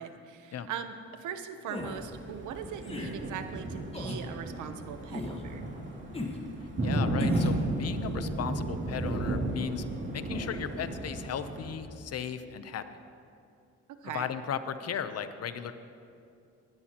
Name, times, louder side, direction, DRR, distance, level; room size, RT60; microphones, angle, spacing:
voice 1, 0.0-5.7 14.0-14.3, right 8 dB, 80° right, 9 dB, 0.9 m, -40 dB
sound 1, 1.7-2.0 2.8-3.1 3.9-4.2 5.1-5.4 6.1-6.4 7.2-7.6, left 2 dB, 20° left, 1.5 m, -37 dB
Thunder, 2.1-11.8, right 1 dB, 40° right, 2.7 m, -33 dB
voice 2, 6.8-9.8 10.1-12.8 14.1-15.7, left 8 dB, 55° left, 11 dB, 0.8 m, -36 dB
18.5 x 13.0 x 3.0 m, 2.5 s
cardioid pair, 90°, 30 cm